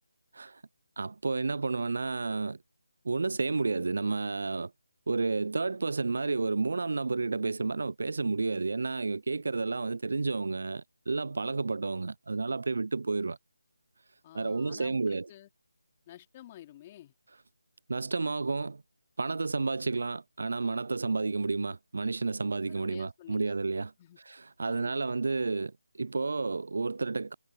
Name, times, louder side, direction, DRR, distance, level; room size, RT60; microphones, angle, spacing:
voice 1, 1.0-2.6 3.0-4.7 5.1-13.4 14.3-15.3 17.9-18.8 19.2-23.9 24.3-27.3, right 3 dB, 65° right, 0.3 m, -31 dB
voice 2, 14.2-15.5 16.1-17.1 22.7-23.5 24.0-24.2 24.6-25.2, left 13 dB, 25° left, 3.0 m, -50 dB
figure-of-eight pair, 160°, 0 cm